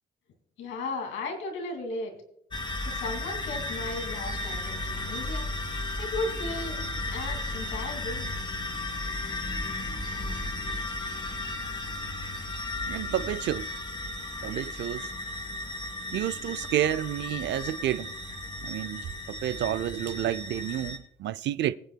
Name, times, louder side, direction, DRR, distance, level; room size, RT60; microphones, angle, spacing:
voice 1, 0.6-2.2 2.9-5.7 6.0-6.8 7.1-8.3, left 2 dB, 85° left, 2.5 m, -35 dB
sound 1, 2.5-21.0, left 2 dB, 25° left, 2.2 m, -34 dB
voice 2, 12.9-13.7 14.4-15.1 16.1-18.1 18.6-21.8, right 12 dB, 65° right, 0.4 m, -30 dB
23.5 x 8.0 x 2.2 m
cardioid pair, 90°, 20 cm